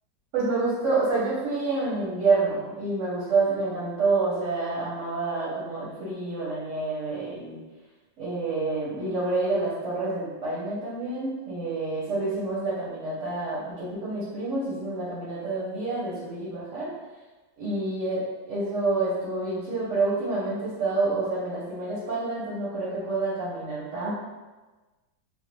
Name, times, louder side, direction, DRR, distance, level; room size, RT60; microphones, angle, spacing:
voice 1, 0.3-7.6 8.2-16.9 17.6-18.2 18.5-24.1, right 3 dB, 55° right, -8 dB, 0.9 m, -28 dB
3.6 x 2.1 x 3.0 m, 1.2 s
omnidirectional pair, 2.1 m